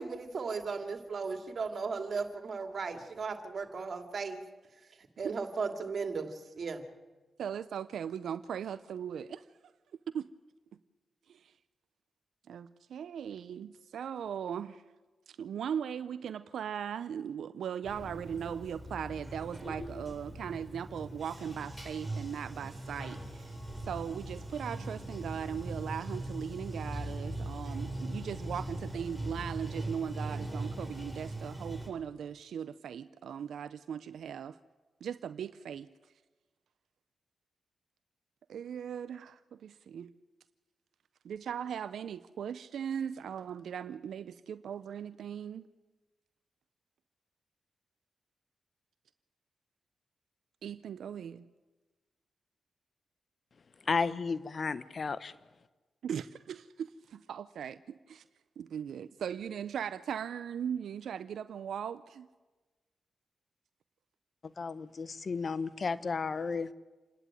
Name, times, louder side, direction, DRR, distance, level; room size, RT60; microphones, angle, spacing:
voice 1, 0.0-4.4 5.2-6.9, right 4 dB, 65° right, 2.4 m, -36 dB
voice 2, 7.4-9.4 10.1-10.3 11.3-11.5 12.5-14.8 15.3-23.6 23.8-34.6 35.0-35.9 38.5-40.1 41.2-45.7 50.6-51.5 56.0-58.2 58.6-62.3, right 8 dB, 80° right, 0.5 m, -39 dB
Bathtub (filling or washing), 17.8-31.9, right 1 dB, 10° left, 7.3 m, -40 dB
voice 3, 53.9-55.3 64.6-66.7, left 4 dB, 55° left, 1.0 m, -33 dB
28.0 x 11.0 x 9.1 m
supercardioid pair, 45°, 0 cm